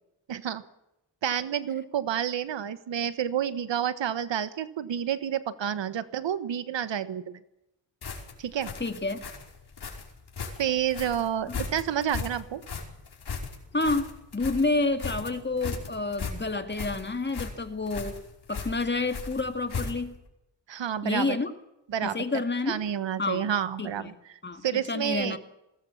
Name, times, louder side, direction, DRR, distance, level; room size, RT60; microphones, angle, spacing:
voice 1, 0.3-0.6 1.2-7.4 8.4-8.7 10.6-12.6 20.7-21.4 21.9-22.2 22.7-24.1 24.6-25.4, right 9 dB, 75° right, 13 dB, 1.4 m, -29 dB
sound 1, 8.0-20.2, left 5 dB, 60° left, 5.2 m, -37 dB
voice 2, 8.8-9.2 11.5-11.6 13.7-18.2 18.5-20.1 21.0-21.5 22.0-22.8 23.2-23.5 23.8-24.2 24.4-25.4, left 3 dB, 25° left, 7 dB, 2.2 m, -29 dB
21.5 x 18.5 x 7.3 m, 0.87 s
cardioid pair, 90°, 44 cm